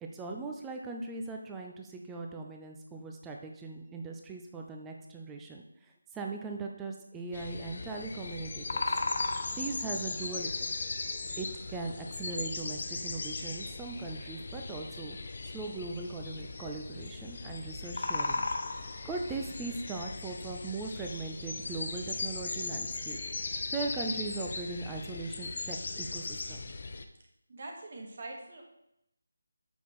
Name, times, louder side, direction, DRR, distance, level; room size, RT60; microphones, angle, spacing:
voice 1, 0.0-9.0 9.5-10.5 11.4-15.2 15.4-18.5 19.0-26.6, right 3 dB, 10° right, 1 dB, 0.6 m, -39 dB
sound 1, 7.3-27.1, left 3 dB, 50° left, 0.6 m, -37 dB
voice 2, 27.5-28.6, right 2 dB, 50° right, 1 dB, 1.6 m, -43 dB
7.0 x 5.9 x 3.1 m, 0.81 s
figure-of-eight pair, 160°, 0 cm